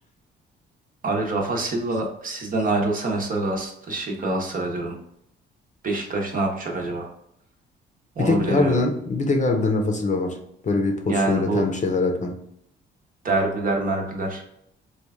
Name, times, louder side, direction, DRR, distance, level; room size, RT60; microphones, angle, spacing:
voice 1, 1.0-5.0 5.8-7.1 8.2-8.8 11.1-11.6 13.2-14.4, right 2 dB, 45° right, 1 dB, 0.9 m, -25 dB
voice 2, 8.2-10.4 10.6-12.4, left 3 dB, 40° left, 4 dB, 0.7 m, -23 dB
3.1 x 2.3 x 3.5 m, 0.73 s
cardioid pair, 90°, 20 cm